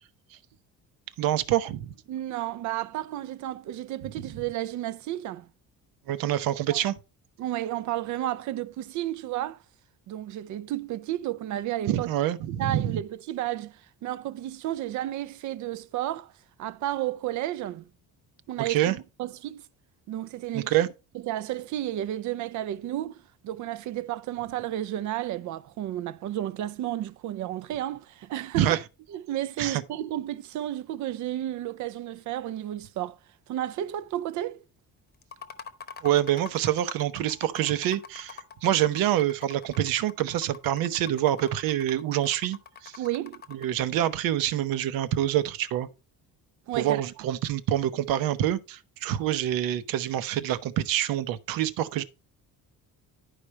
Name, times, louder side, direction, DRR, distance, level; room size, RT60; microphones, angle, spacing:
voice 1, 1.2-1.9 6.1-6.9 11.9-13.0 18.6-18.9 20.5-20.9 28.5-28.8 29.6-29.8 36.0-43.0 43.5-45.9 46.7-52.0, right 12 dB, 85° right, 0.9 m, -26 dB
voice 2, 2.1-5.5 6.7-6.8 7.4-9.6 10.1-12.1 12.6-16.3 16.6-17.9 18.5-19.6 20.1-20.7 21.2-23.2 23.4-28.8 29.1-33.2 33.5-34.6 43.0-43.4 46.7-47.0, right 13 dB, 60° right, 0.6 m, -32 dB
sound 1, 35.2-43.8, left 6 dB, 30° left, 0.9 m, -45 dB
11.0 x 5.0 x 4.3 m
cardioid pair, 160°, 33 cm